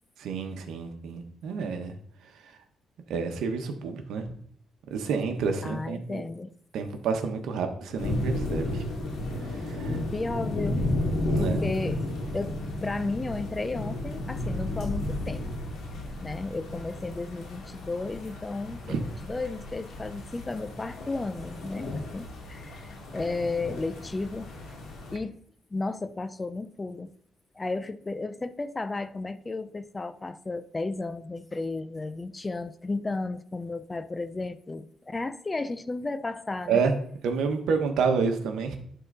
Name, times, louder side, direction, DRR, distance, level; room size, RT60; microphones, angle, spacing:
voice 1, 0.2-1.9 3.1-4.3 4.9-6.2 6.7-8.8 9.6-10.0 11.3-11.6 18.9-19.0 36.7-36.9 37.2-38.8, right 5 dB, 80° right, 1.2 m, -29 dB
voice 2, 5.6-6.5 10.1-10.9 11.4-12.0 12.3-15.4 16.2-24.5 25.1-25.4 25.7-27.1 27.6-36.8, left 3 dB, 20° left, 0.5 m, -33 dB
sound 1, 8.0-25.2, left 1 dB, 80° left, 2.3 m, -33 dB
11.5 x 3.9 x 4.0 m
cardioid pair, 90°, 0 cm